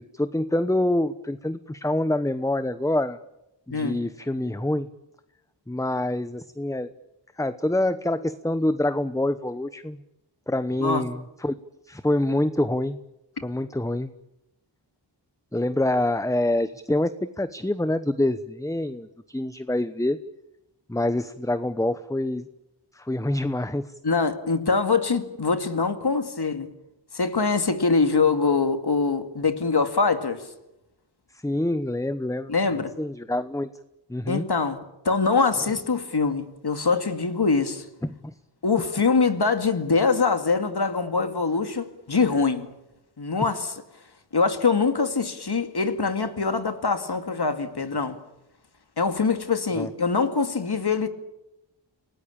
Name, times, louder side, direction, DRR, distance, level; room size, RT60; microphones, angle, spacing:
voice 1, 0.0-3.2 3.7-4.9 5.7-6.9 7.4-10.0 10.5-11.5 11.9-13.0 13.4-14.1 15.5-20.2 20.9-22.5 22.9-23.9 31.3-33.7 34.1-34.5 38.0-38.3 49.8-49.9, left 1 dB, 5° left, 0.9 m, -26 dB
voice 2, 24.0-26.7 27.1-30.5 32.5-32.9 34.3-34.8 35.0-37.8 38.6-42.7 43.2-43.8 44.3-48.2 49.0-51.1, left 4 dB, 60° left, 2.5 m, -23 dB
30.0 x 18.5 x 8.7 m
wide cardioid pair, 70°, 44 cm